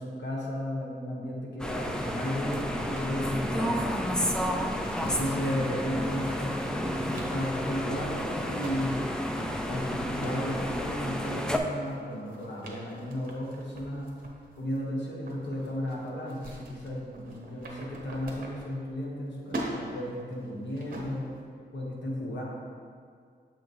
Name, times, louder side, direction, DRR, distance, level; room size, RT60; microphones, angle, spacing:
voice 1, 0.0-3.8 5.0-6.5 7.1-9.0 9.5-14.1 14.6-21.3 21.7-22.4, left 1 dB, 80° left, -3 dB, 1.3 m, -34 dB
sound 1, 1.6-11.6, equal, 5° left, 0.4 m, -31 dB
sound 2, 2.8-19.2 19.4-21.4, right 2 dB, 50° right, 1.0 m, -44 dB
7.1 x 5.8 x 3.0 m, 2.1 s
wide cardioid pair, 120°, 18 cm